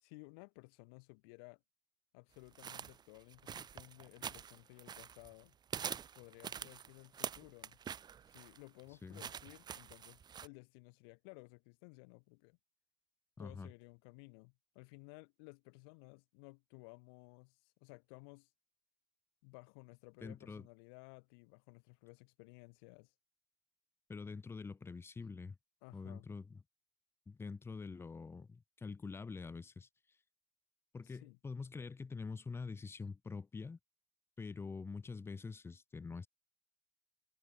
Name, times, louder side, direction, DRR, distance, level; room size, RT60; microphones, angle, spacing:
voice 1, 0.0-1.6 2.1-5.5 6.1-7.8 8.3-12.6 13.4-18.5 19.4-23.1 25.8-26.3 31.0-31.4, left 34 dB, 80° left, 2.3 m, -57 dB
sound 1, 2.6-5.4 5.7-10.5, right 8 dB, 35° right, 3.0 m, -46 dB
voice 2, 13.4-13.7 20.2-20.7 24.1-25.6 25.9-26.6 27.3-29.9 30.9-33.8 34.4-36.3, left 4 dB, 20° left, 3.5 m, -45 dB
supercardioid pair, 115°, 12 cm